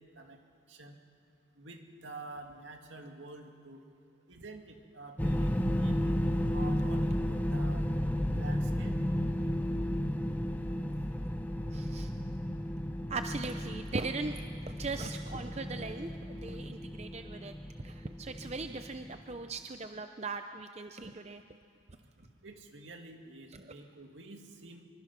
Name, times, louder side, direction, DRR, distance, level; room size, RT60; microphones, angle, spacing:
voice 1, 1.6-3.9 4.3-6.2 6.5-7.9 8.3-9.0 22.2-24.8, right 2 dB, 75° right, 3 dB, 2.4 m, -48 dB
sound 1, 5.2-19.2, equal, 10° left, 0.9 m, -33 dB
voice 2, 11.7-12.1 13.1-17.5 17.8-21.4, right 3 dB, 35° right, 7 dB, 0.6 m, -39 dB
25.0 x 24.0 x 6.0 m, 2.4 s
head